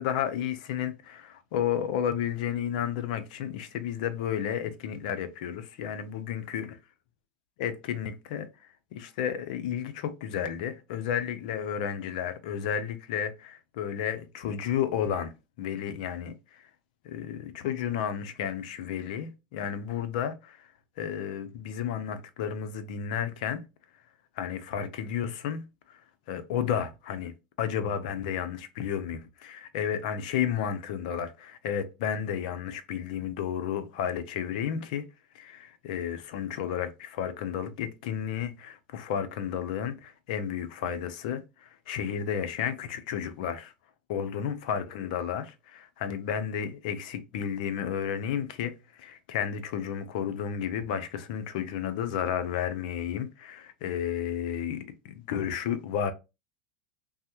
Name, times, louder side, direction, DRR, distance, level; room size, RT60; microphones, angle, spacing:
voice 1, 0.0-6.7 7.6-8.5 8.9-15.3 15.6-16.6 17.0-20.7 21.0-23.6 24.4-25.6 26.3-27.3 27.6-35.0 35.3-43.7 44.1-56.1, left 8 dB, 70° left, 0.5 m, -32 dB
3.2 x 2.0 x 2.9 m
hypercardioid pair, 115°, 5 cm